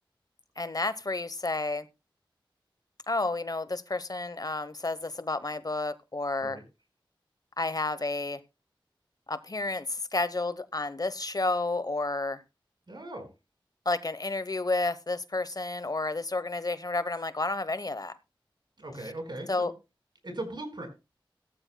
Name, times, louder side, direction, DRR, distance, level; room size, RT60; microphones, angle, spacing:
voice 1, 0.6-1.9 3.1-6.6 7.6-8.4 9.3-12.4 13.8-18.2 19.5-19.7, left 2 dB, 45° left, 14 dB, 1.0 m, -31 dB
voice 2, 12.9-13.3 18.8-19.7 20.2-20.9, right 1 dB, 60° right, 6 dB, 4.7 m, -38 dB
16.5 x 13.5 x 2.2 m, 0.27 s
wide cardioid pair, 50°, 9 cm